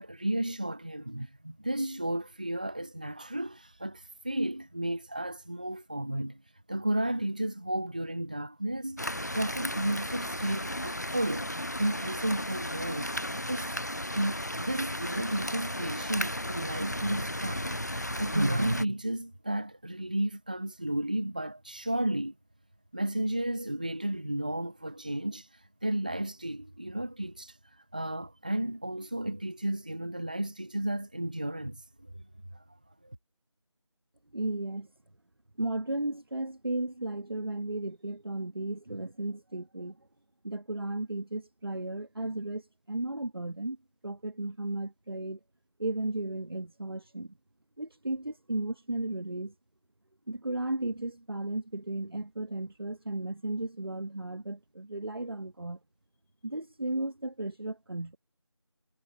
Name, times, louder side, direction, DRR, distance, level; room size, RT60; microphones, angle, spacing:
voice 1, 0.0-6.4 6.7-13.1 13.5-13.8 14.1-17.7 18.2-22.3 22.9-32.1 32.5-32.6 33.0-33.2, right 1 dB, 15° right, 1.0 m, -33 dB
sound 1, 9.0-18.9, left 1 dB, 35° left, 0.7 m, -35 dB
voice 2, 34.3-34.9 35.6-40.0 40.4-43.8 44.0-45.4 45.8-47.3 47.8-49.5 50.3-55.8 56.4-58.2, right 2 dB, 50° right, 1.4 m, -34 dB
figure-of-eight pair, 170°, 16 cm